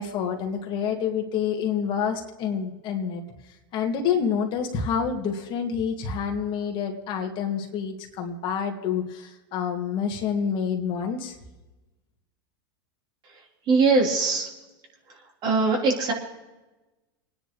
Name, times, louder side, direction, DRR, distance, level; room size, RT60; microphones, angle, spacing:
voice 1, 0.0-3.2 3.7-11.4, left 7 dB, 40° left, 2 dB, 2.2 m, -28 dB
voice 2, 13.7-14.5 15.4-16.1, right 4 dB, 40° right, -1 dB, 4.0 m, -21 dB
30.0 x 10.0 x 3.2 m, 1.1 s
hypercardioid pair, 120°, 12 cm